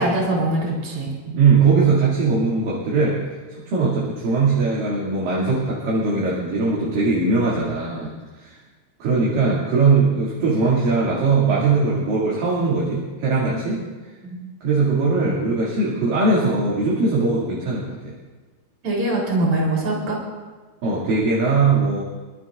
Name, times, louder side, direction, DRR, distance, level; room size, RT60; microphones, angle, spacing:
voice 1, 0.0-1.1 13.5-13.6 14.2-14.4 18.8-20.2, right 1 dB, 40° right, -4 dB, 4.1 m, -22 dB
voice 2, 1.3-3.2 3.5-8.1 8.4-8.6 9.0-13.8 14.6-18.1 20.8-22.0, right 4 dB, 65° right, -6 dB, 3.9 m, -20 dB
27.5 x 12.0 x 2.5 m, 1.3 s
omnidirectional pair, 4.4 m